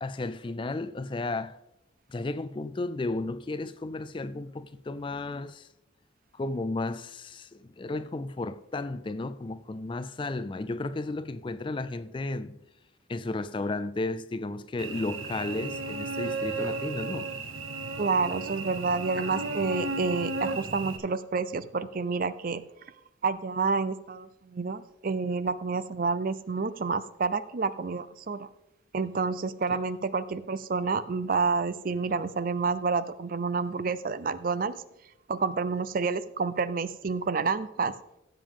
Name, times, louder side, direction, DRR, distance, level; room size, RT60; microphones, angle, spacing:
voice 1, 0.0-1.6 2.1-5.7 6.3-12.6 13.1-17.3 29.7-29.8, left 2 dB, 25° left, 0.3 m, -33 dB
Cricket / Buzz, 14.8-21.0, right 3 dB, 85° right, 1.0 m, -34 dB
voice 2, 18.0-22.6 23.2-28.5 28.9-34.8 35.3-37.9, right 4 dB, 45° right, 0.4 m, -29 dB
15.5 x 7.2 x 3.6 m
head